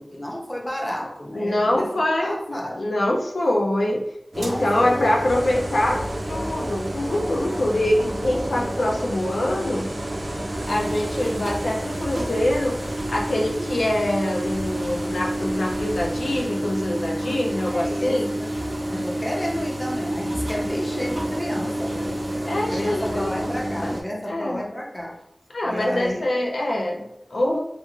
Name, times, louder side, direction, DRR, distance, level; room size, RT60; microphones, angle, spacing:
voice 1, 0.0-1.9 2.2-2.8 4.3-5.1 10.7-11.1 17.2-18.5 18.9-22.2 22.7-25.2 25.6-26.3, equal, 15° left, 0 dB, 0.5 m, -31 dB
voice 2, 1.3-4.0 4.3-6.0 6.3-9.9 10.7-12.8 13.1-18.3 22.4-23.9 24.3-24.6 25.5-27.6, left 1 dB, 85° left, -1 dB, 0.4 m, -24 dB
sound 1, 4.3-24.0, right 1 dB, 35° right, 0.6 m, -29 dB
sound 2, 5.2-16.4, right 1 dB, 85° right, 0.5 m, -37 dB
2.4 x 2.3 x 2.9 m, 0.80 s
wide cardioid pair, 75°, 0 cm